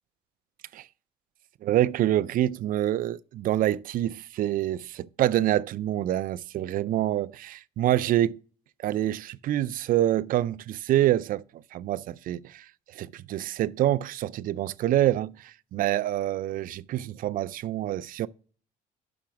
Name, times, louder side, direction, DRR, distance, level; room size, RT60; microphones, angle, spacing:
voice 1, 1.6-8.4 8.8-18.3, right 13 dB, 55° right, 0.4 m, -26 dB
6.0 x 5.7 x 5.1 m
cardioid pair, 110°, 17 cm